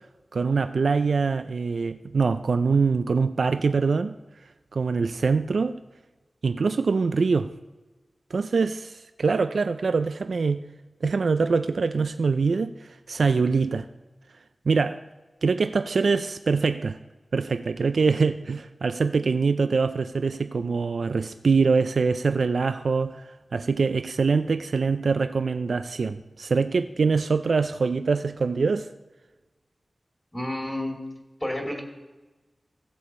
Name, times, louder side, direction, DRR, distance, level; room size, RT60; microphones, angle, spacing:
voice 1, 0.3-4.1 4.7-5.8 6.4-7.5 8.3-10.6 11.0-13.9 14.7-15.0 15.4-17.0 17.3-28.9, right 4 dB, 85° right, 10 dB, 0.3 m, -24 dB
voice 2, 30.3-31.0 31.4-31.8, left 1 dB, 15° left, 1 dB, 2.3 m, -30 dB
15.0 x 6.8 x 4.2 m, 1.2 s
cardioid pair, 50°, 0 cm